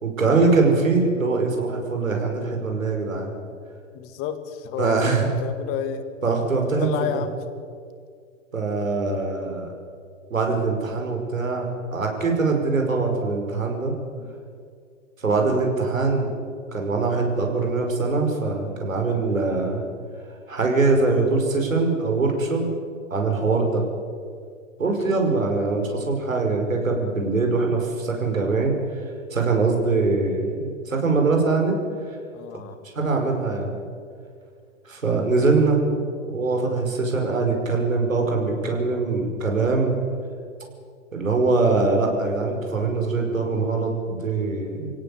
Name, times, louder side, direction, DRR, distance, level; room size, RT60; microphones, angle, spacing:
voice 1, 0.0-3.3 4.8-5.3 6.2-7.2 8.5-9.7 10.3-13.9 15.2-16.3 16.7-19.8 20.5-22.7 23.1-23.8 24.8-28.7 29.3-31.8 33.0-33.7 34.9-35.8 36.3-40.0 41.1-44.9, right 3 dB, 90° right, 2 dB, 5.4 m, -22 dB
voice 2, 3.9-6.1 6.6-7.4 14.2-14.4 25.2-25.5 32.3-32.9, left 8 dB, 35° left, 8 dB, 2.2 m, -32 dB
24.0 x 17.0 x 8.3 m, 2.2 s
hypercardioid pair, 110°, 39 cm